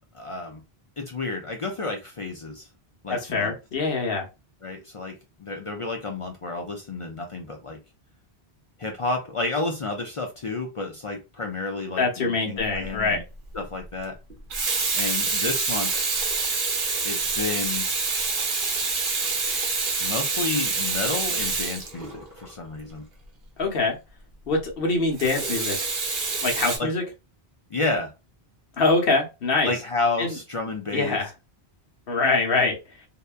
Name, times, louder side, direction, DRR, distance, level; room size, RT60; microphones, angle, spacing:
voice 1, 0.1-0.6 1.0-2.7 3.0-3.5 4.6-7.8 8.8-13.2 13.5-14.2 14.9-15.9 17.0-17.9 20.0-23.0 26.8-26.9 27.7-28.1 29.6-31.2, left 3 dB, 50° left, 2 dB, 0.4 m, -30 dB
voice 2, 3.1-4.3 12.0-13.2 23.6-24.0 24.5-25.8 26.4-27.0 28.8-29.7 30.2-30.4 30.9-31.3 32.1-32.8, left 3 dB, 65° left, 2 dB, 1.0 m, -24 dB
Water tap faucet / Sink (filling or washing), 12.7-13.0 14.3-22.5 25.2-26.8, right 4 dB, 55° right, 0.9 m, -26 dB
2.7 x 2.2 x 2.3 m, 0.26 s
omnidirectional pair, 1.1 m